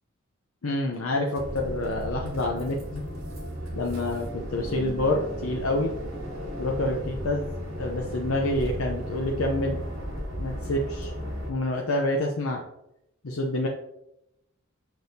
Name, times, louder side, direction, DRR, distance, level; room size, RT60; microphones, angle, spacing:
voice 1, 0.6-3.0 3.7-5.9 6.6-9.8 10.4-11.1 11.5-12.6 13.2-13.7, left 1 dB, 85° left, 0 dB, 0.7 m, -28 dB
sound 1, 1.4-11.5, equal, 75° right, 2.1 m, -35 dB
6.8 x 6.1 x 2.7 m, 0.84 s
head